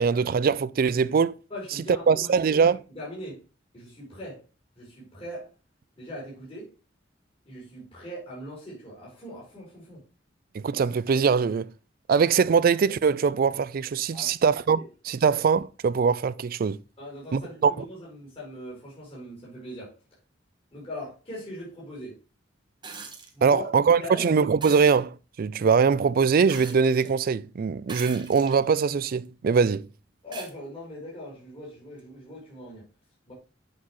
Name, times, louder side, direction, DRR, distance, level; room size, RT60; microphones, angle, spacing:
voice 1, 0.0-1.4 2.1-2.8 10.5-11.7 12.1-16.8 17.3-17.7 23.4-29.9, right 5 dB, 50° right, 0.4 m, -22 dB
voice 2, 1.5-3.4 3.7-4.4 4.7-5.5 6.0-6.7 7.4-10.0 14.1-14.3 14.8-14.9 17.0-19.9 20.7-22.2 23.3-24.3 30.2-32.9 33.3-33.4, left 1 dB, 30° left, 4.7 m, -40 dB
sound 1, 22.8-23.3 24.6-24.9 26.5-27.1 27.8-28.6 29.2-29.3 30.3-30.5 32.0-32.1, right 5 dB, 25° right, 1.2 m, -41 dB
8.6 x 5.8 x 3.1 m
head